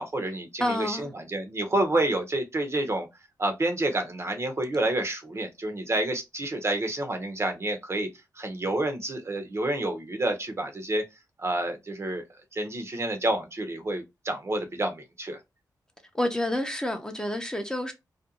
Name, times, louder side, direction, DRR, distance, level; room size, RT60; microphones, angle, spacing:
voice 1, 0.0-3.1 3.4-8.1 8.3-11.0 11.4-12.2 12.5-15.4, right 1 dB, 40° right, 0.7 m, -29 dB
voice 2, 0.6-1.1 16.1-17.9, left 1 dB, 10° left, 0.5 m, -28 dB
2.5 x 2.2 x 2.7 m
cardioid pair, 75°, 7 cm